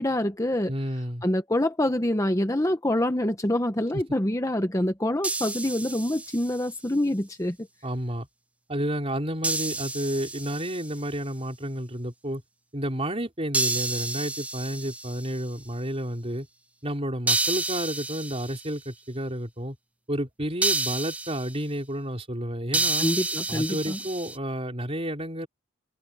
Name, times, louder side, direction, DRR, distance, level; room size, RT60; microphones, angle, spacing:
voice 1, 0.0-0.7 1.2-7.7 23.0-24.0, left 1 dB, 15° left, 0.9 m, -26 dB
voice 2, 0.7-1.2 3.9-4.0 7.8-8.3 8.7-12.4 12.7-16.5 16.8-19.8 20.1-23.1 23.5-25.5, equal, 30° right, 4.3 m, -31 dB
sound 1, 5.2-6.7 9.4-11.0 13.5-15.4 17.3-18.7 20.6-21.6 22.7-24.4, right 2 dB, 5° right, 0.5 m, -29 dB
head